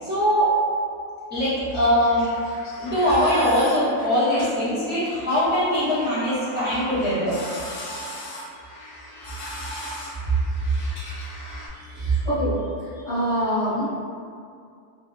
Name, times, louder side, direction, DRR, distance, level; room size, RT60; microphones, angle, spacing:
voice 1, 0.0-0.6 1.3-2.3 2.8-7.4, equal, 15° right, -14 dB, 0.4 m, -22 dB
sound 1, 1.7-11.7, left 1 dB, 70° left, 0.8 m, -38 dB
voice 2, 11.7-13.9, equal, 35° left, -16 dB, 0.8 m, -26 dB
2.8 x 2.0 x 2.4 m, 2.3 s
omnidirectional pair, 1.7 m